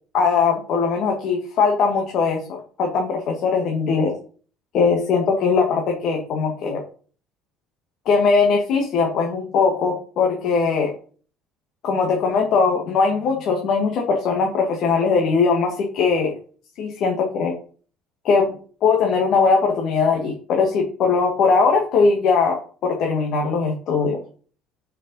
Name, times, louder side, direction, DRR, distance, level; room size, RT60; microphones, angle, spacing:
voice 1, 0.1-4.2 4.7-6.8 8.0-10.9 11.8-16.3 16.8-17.5 18.2-18.5 18.8-22.6 22.8-24.2, left 5 dB, 60° left, 1 dB, 1.8 m, -20 dB
6.5 x 5.5 x 5.4 m, 0.42 s
supercardioid pair, 90°, 0 cm